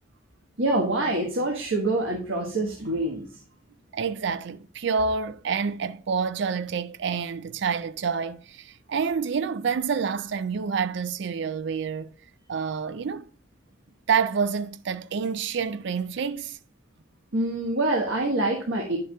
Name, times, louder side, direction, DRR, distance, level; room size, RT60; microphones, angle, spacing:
voice 1, 0.6-3.2 17.3-19.0, right 2 dB, 75° right, 1.4 m, -25 dB
voice 2, 3.9-12.1 12.5-13.3 14.1-16.6, right 6 dB, 55° right, 0.4 m, -28 dB
10.0 x 6.7 x 2.3 m
head